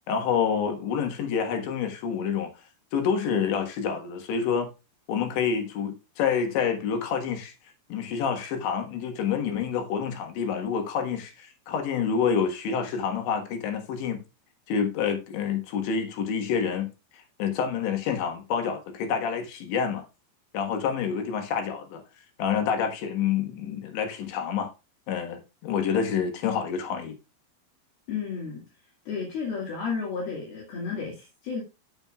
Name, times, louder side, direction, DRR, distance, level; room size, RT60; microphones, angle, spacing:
voice 1, 0.1-2.5 2.9-4.7 5.1-7.5 7.9-14.2 14.7-20.0 20.5-22.0 22.4-24.7 25.1-27.2, left 7 dB, 75° left, 3.7 m, -28 dB
voice 2, 28.1-28.6 29.1-31.6, left 5 dB, 60° left, 3.8 m, -32 dB
15.0 x 7.2 x 2.4 m
omnidirectional pair, 5.3 m